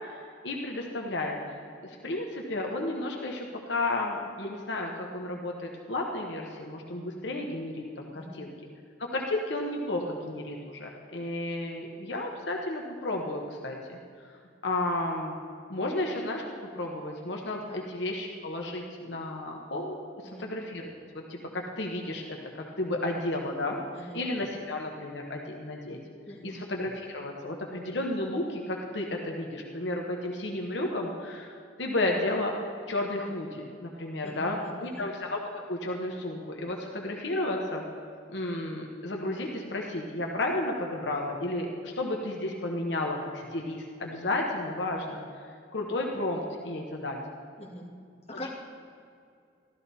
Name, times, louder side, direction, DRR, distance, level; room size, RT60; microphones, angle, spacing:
voice 1, 0.4-1.4 1.8-8.5 9.0-14.0 14.6-15.3 15.7-19.9 20.4-26.0 26.4-31.5 31.8-32.6 32.9-35.4 35.7-37.8 38.3-45.2 45.7-47.2, left 2 dB, 75° left, 0 dB, 1.1 m, -32 dB
voice 2, 26.3-26.6 34.2-35.1 47.6-47.9 48.3-48.5, left 1 dB, 35° left, -3 dB, 1.8 m, -43 dB
13.0 x 13.0 x 4.1 m, 2.4 s
head